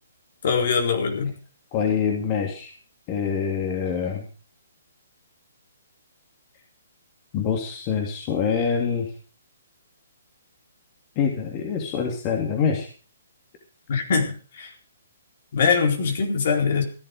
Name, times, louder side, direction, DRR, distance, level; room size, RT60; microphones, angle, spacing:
voice 1, 0.4-1.3 13.9-14.7 15.5-16.8, left 5 dB, 55° left, 2 dB, 4.3 m, -22 dB
voice 2, 1.7-2.7 3.1-4.3 7.3-9.1 11.2-12.9, left 6 dB, 30° left, 2 dB, 2.8 m, -25 dB
15.5 x 11.5 x 5.2 m, 0.39 s
hypercardioid pair, 135°, 0 cm